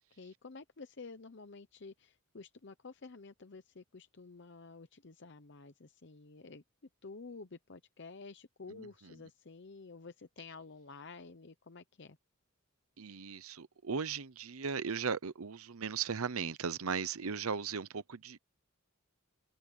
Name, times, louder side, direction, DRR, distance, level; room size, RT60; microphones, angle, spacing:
voice 1, 0.0-6.6 7.0-12.2, left 4 dB, 55° left, 0.8 m, -51 dB
voice 2, 13.0-18.4, right 6 dB, 85° right, 0.8 m, -37 dB
open air
head